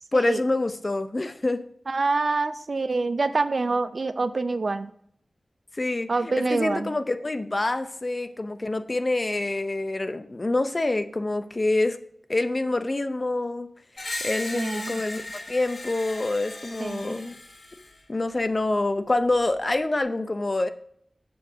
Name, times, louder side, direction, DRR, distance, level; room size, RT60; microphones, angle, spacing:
voice 1, 0.1-1.6 5.8-12.0 12.3-13.7 14.2-15.2 15.5-17.3 18.1-20.7, left 2 dB, 40° left, 9 dB, 0.6 m, -26 dB
voice 2, 1.9-4.9 6.1-7.0 14.5-15.0 16.8-17.2, right 3 dB, 65° right, 11 dB, 0.5 m, -26 dB
Screech, 14.0-18.0, left 2 dB, 65° left, 1.4 m, -37 dB
7.0 x 6.7 x 3.8 m, 0.66 s
wide cardioid pair, 60°, 0 cm